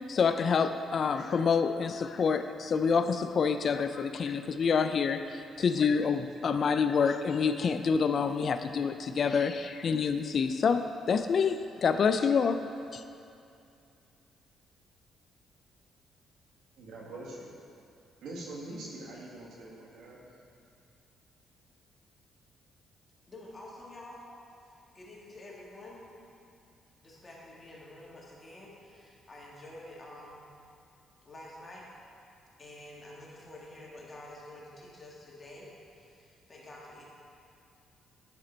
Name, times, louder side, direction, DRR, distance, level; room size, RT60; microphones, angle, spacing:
voice 1, 0.1-12.6 12.9-13.0, left 5 dB, 50° left, 9 dB, 0.3 m, -27 dB
voice 2, 16.8-17.5 18.2-20.3, right 2 dB, 85° right, -4 dB, 1.6 m, -43 dB
voice 3, 23.3-24.2 24.6-26.0 27.0-30.4 31.3-31.9 32.6-37.0, left 1 dB, 30° left, -4 dB, 1.8 m, -49 dB
9.5 x 5.0 x 4.3 m, 2.5 s
cardioid pair, 90°, 0 cm